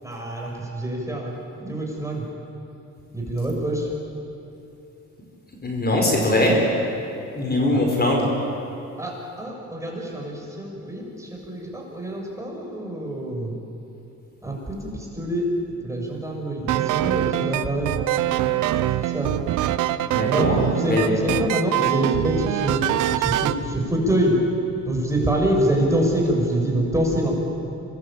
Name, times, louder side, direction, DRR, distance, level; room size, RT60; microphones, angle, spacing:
voice 1, 0.0-2.2 3.1-3.9 7.7-7.8 9.0-13.5 14.4-17.9 19.0-19.3 20.3-22.8 23.2-24.4 24.8-27.4, right 1 dB, 10° right, -1 dB, 6.8 m, -25 dB
voice 2, 5.6-6.7 7.3-8.3 20.1-20.6 20.9-21.0, left 1 dB, 30° left, 0 dB, 5.2 m, -21 dB
sound 1, 16.7-23.6, right 13 dB, 90° right, 0.9 m, -23 dB
25.5 x 20.5 x 8.9 m, 2.7 s
cardioid pair, 90°, 30 cm